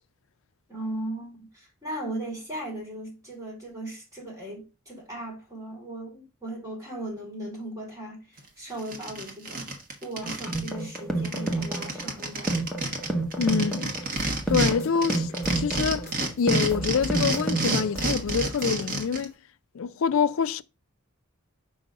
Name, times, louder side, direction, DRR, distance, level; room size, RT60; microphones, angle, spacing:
voice 1, 0.7-9.8 10.0-12.6, right 1 dB, 15° right, 3.2 m, -37 dB
sound 1, 8.4-8.5 8.8-10.7 10.9-11.0 11.2-14.7 15.0-19.2, right 2 dB, 40° right, 1.3 m, -29 dB
sound 2, 10.2-18.2, right 2 dB, ahead, 0.8 m, -30 dB
voice 2, 13.4-14.0 14.5-16.1 16.4-19.4 19.7-20.6, left 6 dB, 60° left, 0.4 m, -26 dB
sound 3, 14.2-16.4 16.7-19.0, right 1 dB, 45° left, 1.9 m, -38 dB
5.4 x 3.9 x 5.0 m
head